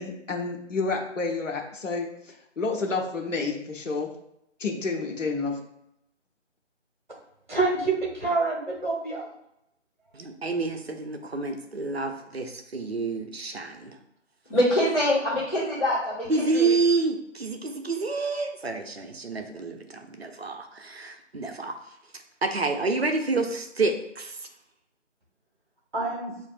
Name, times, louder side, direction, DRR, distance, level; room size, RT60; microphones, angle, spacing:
voice 1, 0.0-4.1 4.6-5.6, left 3 dB, 85° left, 0 dB, 1.0 m, -30 dB
voice 2, 7.5-9.3 25.9-26.3, right 3 dB, 40° right, -3 dB, 1.2 m, -27 dB
voice 3, 10.1-14.0 16.3-21.7 22.4-24.5, right 3 dB, 55° right, 4 dB, 0.6 m, -28 dB
voice 4, 14.5-16.7, left 1 dB, 35° left, -8 dB, 1.4 m, -24 dB
6.5 x 2.5 x 2.4 m, 0.80 s
figure-of-eight pair, 170°, 37 cm